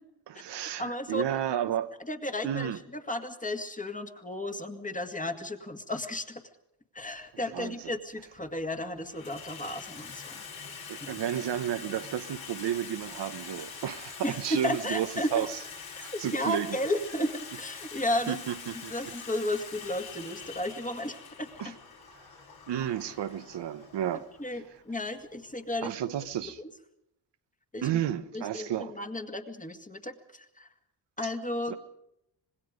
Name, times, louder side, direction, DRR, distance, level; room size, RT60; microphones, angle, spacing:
voice 1, 0.3-1.9 2.4-2.8 7.5-7.9 10.9-15.6 16.0-16.8 18.3-19.1 21.6-21.7 22.7-24.3 24.5-24.6 25.8-26.6 27.8-28.9 31.2-31.3 31.7-31.8, right 10 dB, 85° right, 1.2 m, -32 dB
voice 2, 0.8-1.4 2.1-6.4 6.9-10.4 11.0-11.2 14.2-14.4 14.6-15.5 16.1-17.3 17.6-18.4 18.9-21.5 24.4-25.9 26.4-26.7 27.7-27.9 28.3-30.7 31.2-31.8, left 1 dB, 20° left, 2.1 m, -34 dB
Water tap faucet / Sink (filling or washing), 7.1-7.2 8.2-8.6 8.9-26.5, left 5 dB, 60° left, 4.7 m, -45 dB
26.0 x 20.5 x 5.2 m
cardioid pair, 110°, 41 cm